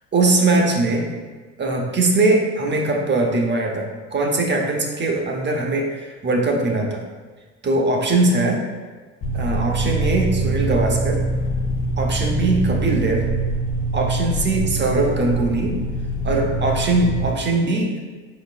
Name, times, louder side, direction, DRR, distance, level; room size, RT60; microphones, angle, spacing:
voice 1, 0.1-1.1 1.6-7.0 7.6-8.6 9.3-11.2 12.0-13.2 13.9-15.8 16.2-17.9, right 2 dB, 30° right, 1 dB, 0.9 m, -21 dB
sound 1, 9.2-17.3, right 2 dB, 40° left, 0.9 m, -24 dB
4.7 x 4.1 x 2.4 m, 1.4 s
supercardioid pair, 85°, 35 cm